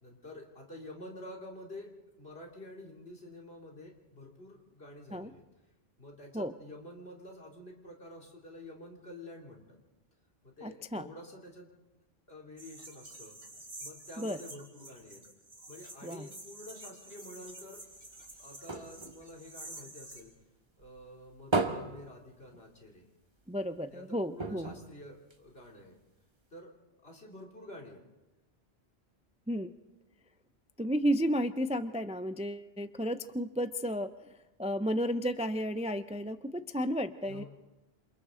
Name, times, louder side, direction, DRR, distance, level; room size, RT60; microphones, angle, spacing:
voice 1, 0.0-1.9 2.2-5.4 6.0-9.8 10.4-11.7 12.3-13.4 13.8-15.2 15.7-17.8 18.4-20.3 20.8-23.1 23.9-26.0 26.5-26.7 27.0-28.0 37.3-37.5, left 1 dB, 75° left, -1 dB, 3.3 m, -49 dB
voice 2, 10.6-11.1 14.2-14.4 16.0-16.3 23.5-24.7 29.5-29.7 30.8-34.1 34.6-37.4, equal, 10° right, 11 dB, 0.4 m, -32 dB
sound 1, 12.6-20.2, right 1 dB, 75° right, 4.2 m, -49 dB
sound 2, 17.8-20.4 20.8-23.0 23.4-23.5 23.8-23.9 24.4-25.9 26.5-26.6, right 3 dB, 25° right, 1.2 m, -37 dB
28.0 x 27.5 x 3.8 m, 1.1 s
omnidirectional pair, 1.0 m